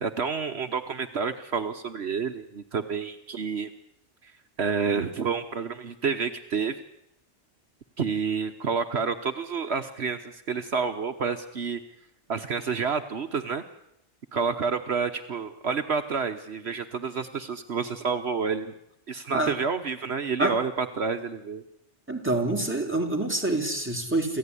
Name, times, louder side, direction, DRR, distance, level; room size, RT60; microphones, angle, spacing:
voice 1, 0.0-3.7 4.2-4.3 4.6-6.8 8.0-11.8 12.3-13.6 14.3-18.7 19.1-21.6, right 5 dB, 65° right, 8 dB, 1.4 m, -29 dB
voice 2, 22.1-24.4, right 2 dB, 10° right, 2 dB, 3.9 m, -26 dB
28.0 x 15.5 x 10.0 m, 0.81 s
omnidirectional pair, 1.2 m